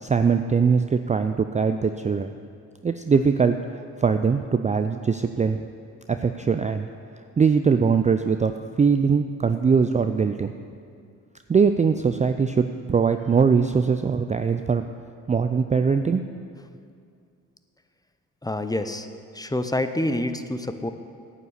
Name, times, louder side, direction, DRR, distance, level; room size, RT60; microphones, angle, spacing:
voice 1, 0.0-2.3 2.8-5.6 6.1-6.9 7.4-8.5 8.8-10.5 11.5-14.8 15.3-16.2, right 5 dB, 20° right, 8 dB, 0.4 m, -21 dB
voice 2, 18.4-19.1 19.3-20.9, left 1 dB, 10° left, 9 dB, 0.7 m, -27 dB
9.4 x 7.7 x 8.2 m, 2.3 s
hypercardioid pair, 45°, 39 cm